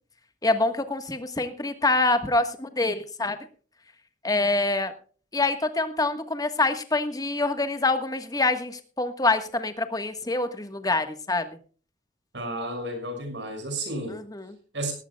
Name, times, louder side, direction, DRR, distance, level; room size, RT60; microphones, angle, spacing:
voice 1, 0.4-3.4 4.2-4.9 5.3-11.5 14.1-14.5, left 2 dB, 20° left, 9 dB, 1.4 m, -25 dB
voice 2, 12.3-14.2 14.7-14.9, right 1 dB, 80° right, 6 dB, 6.1 m, -32 dB
18.5 x 16.0 x 2.3 m, 0.40 s
head